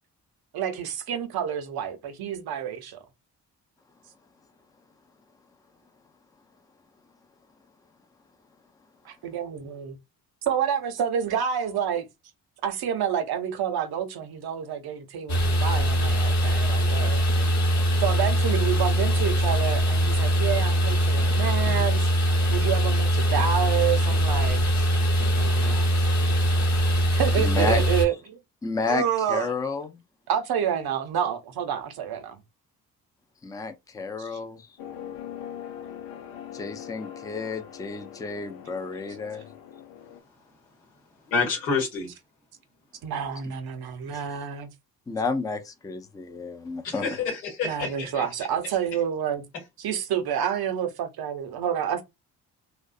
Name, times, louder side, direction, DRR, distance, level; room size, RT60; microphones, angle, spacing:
voice 1, 0.5-3.0 9.0-10.0 10.4-12.1 12.6-17.2 18.0-22.1 22.5-24.9 25.3-25.9 27.2-28.4 28.9-29.5 30.3-32.4 34.2-34.4 43.0-44.7 47.6-49.4 49.8-52.0, right 8 dB, 50° right, 0.7 m, -28 dB
sound 1, 15.3-28.1, equal, 35° left, 1.0 m, -22 dB
voice 2, 27.4-27.8 28.6-29.0 29.3-30.0 33.4-34.7 36.5-39.4 44.1-44.2 45.1-47.0, left 4 dB, 10° left, 0.4 m, -31 dB
sound 2, 34.8-40.2, left 9 dB, 65° left, 0.6 m, -41 dB
voice 3, 41.3-42.1 46.8-48.2, left 4 dB, 85° left, 1.0 m, -28 dB
2.5 x 2.1 x 2.4 m
hypercardioid pair, 40°, 47 cm